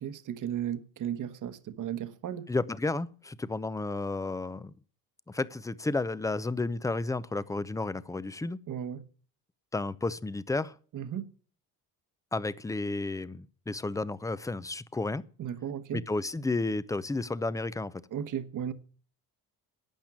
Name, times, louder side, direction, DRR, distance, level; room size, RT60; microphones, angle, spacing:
voice 1, 0.0-2.5 8.7-9.0 10.9-11.3 15.4-16.1 18.1-18.7, right 9 dB, 55° right, 1.2 m, -35 dB
voice 2, 2.5-4.7 5.3-8.6 9.7-10.7 12.3-15.2 15.9-18.0, left 3 dB, 10° left, 0.5 m, -32 dB
12.0 x 8.6 x 7.4 m
cardioid pair, 100°, 37 cm